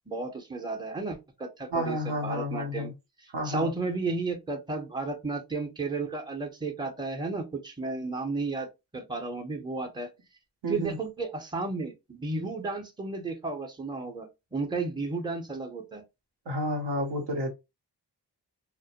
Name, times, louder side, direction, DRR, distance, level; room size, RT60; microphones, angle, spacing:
voice 1, 0.1-2.9 3.4-8.7 8.9-10.1 10.7-16.0, right 3 dB, 10° right, 0.7 m, -33 dB
voice 2, 1.7-2.9 3.3-3.7 10.6-11.0 16.5-17.5, equal, 70° right, 0.9 m, -30 dB
2.1 x 2.1 x 2.8 m
cardioid pair, 45°, 43 cm